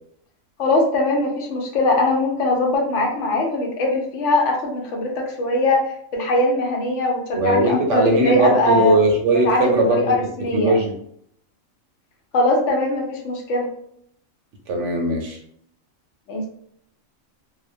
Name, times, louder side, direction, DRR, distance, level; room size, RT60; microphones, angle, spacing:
voice 1, 0.6-5.8 6.1-9.0 9.4-10.8 12.3-13.7 16.3-16.5, left 2 dB, 70° left, 0 dB, 0.8 m, -21 dB
voice 2, 7.3-10.1 10.5-10.9 14.7-15.4, right 2 dB, 70° right, 2 dB, 0.8 m, -19 dB
2.4 x 2.1 x 2.6 m, 0.67 s
omnidirectional pair, 1.4 m